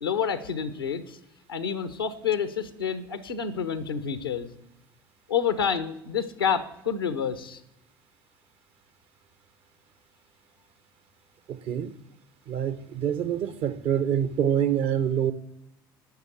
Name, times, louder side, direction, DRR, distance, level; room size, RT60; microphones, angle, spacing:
voice 1, 0.0-1.2 1.5-4.5 5.3-7.6, left 7 dB, 85° left, 1.0 m, -28 dB
voice 2, 11.5-11.9 12.5-15.3, right 9 dB, 55° right, 0.9 m, -26 dB
12.0 x 7.0 x 8.3 m
figure-of-eight pair, 60°, 12 cm